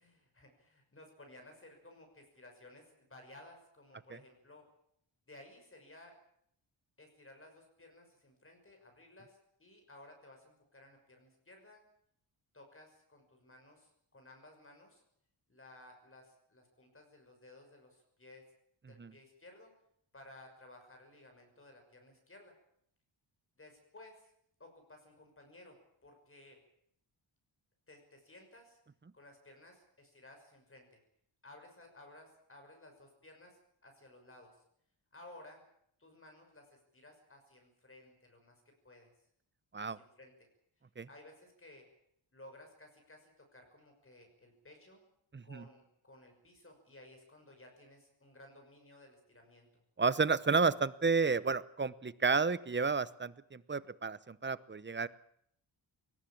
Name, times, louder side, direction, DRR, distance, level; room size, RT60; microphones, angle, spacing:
voice 1, 0.0-4.7 5.3-6.1 7.0-11.8 12.5-15.0 15.5-18.4 18.9-19.7 20.1-22.5 23.6-24.3 24.6-26.6 27.9-28.8 29.1-31.0 31.4-34.6 35.1-35.6 36.0-39.1 39.8-40.3 41.1-41.9 42.3-45.1 45.4-49.7, left 1 dB, 25° left, 3 dB, 6.1 m, -57 dB
voice 2, 45.3-45.6 50.0-55.1, right 4 dB, 25° right, 17 dB, 0.8 m, -31 dB
21.0 x 18.5 x 8.7 m, 0.71 s
wide cardioid pair, 115°, 47 cm